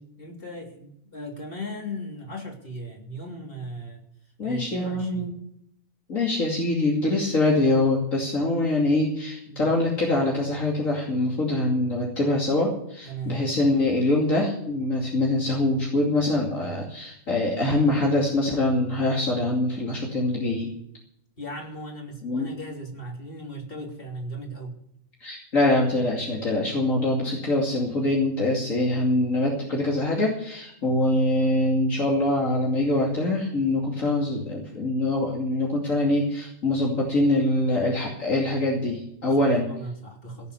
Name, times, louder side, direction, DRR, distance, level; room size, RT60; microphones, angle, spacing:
voice 1, 0.2-4.1 4.4-5.3 9.5-9.7 13.0-13.5 21.4-24.7 39.3-40.5, right 1 dB, 40° left, 1 dB, 3.4 m, -37 dB
voice 2, 4.4-5.3 6.1-20.7 22.2-22.5 25.2-39.7, left 2 dB, 65° left, -2 dB, 3.0 m, -24 dB
17.0 x 7.3 x 8.3 m, 0.72 s
omnidirectional pair, 1.5 m